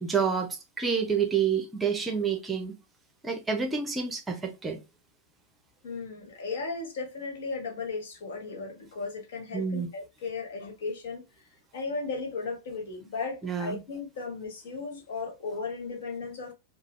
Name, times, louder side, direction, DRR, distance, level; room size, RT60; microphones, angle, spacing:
voice 1, 0.0-2.7 3.2-4.8 9.5-9.9 13.4-13.8, right 6 dB, 15° right, 0.7 m, -28 dB
voice 2, 5.8-11.2 11.7-16.5, left 4 dB, 60° left, 1.2 m, -36 dB
4.8 x 2.0 x 3.1 m
figure-of-eight pair, 90°, 0 cm